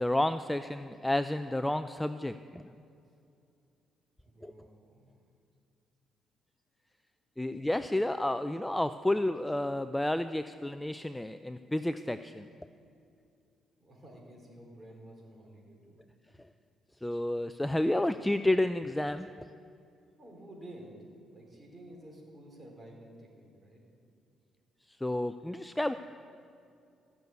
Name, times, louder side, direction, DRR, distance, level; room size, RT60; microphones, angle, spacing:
voice 1, 0.0-2.6 4.4-4.5 7.4-12.5 17.0-19.3 25.0-25.9, left 1 dB, 10° left, 11 dB, 0.4 m, -30 dB
voice 2, 4.2-5.2 13.8-16.0 20.2-23.8, right 1 dB, 25° right, -1 dB, 4.2 m, -51 dB
15.0 x 6.8 x 9.3 m, 2.5 s
cardioid pair, 90°, 0 cm